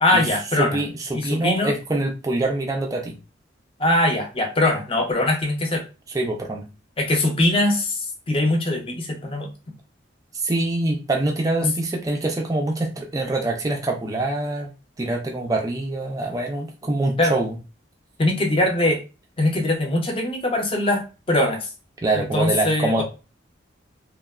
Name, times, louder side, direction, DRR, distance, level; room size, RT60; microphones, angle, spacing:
voice 1, 0.0-0.8 1.1-1.7 3.8-5.8 7.0-9.5 17.2-17.3 18.2-19.0 19.4-21.7 22.1-23.0, left 1 dB, 30° left, 2 dB, 0.6 m, -22 dB
voice 2, 0.5-3.2 6.1-6.7 10.3-17.6 22.0-23.0, right 2 dB, 20° right, 1 dB, 0.4 m, -25 dB
3.0 x 2.1 x 2.3 m, 0.31 s
head